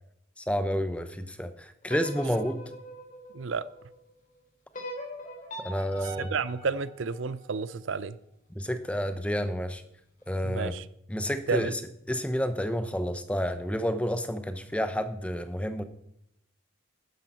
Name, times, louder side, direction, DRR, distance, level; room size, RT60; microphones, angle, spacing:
voice 1, 0.4-2.6 5.6-6.3 8.5-9.8 10.3-10.7 11.1-11.8 12.1-15.8, equal, 5° left, 10 dB, 0.8 m, -30 dB
sound 1, 1.8-4.0 4.7-7.9, equal, 40° left, 3.5 m, -42 dB
voice 2, 3.3-3.7 6.0-8.2 10.4-10.9 11.5-11.8, right 5 dB, 70° right, 17 dB, 0.5 m, -31 dB
12.0 x 10.5 x 5.6 m, 0.77 s
head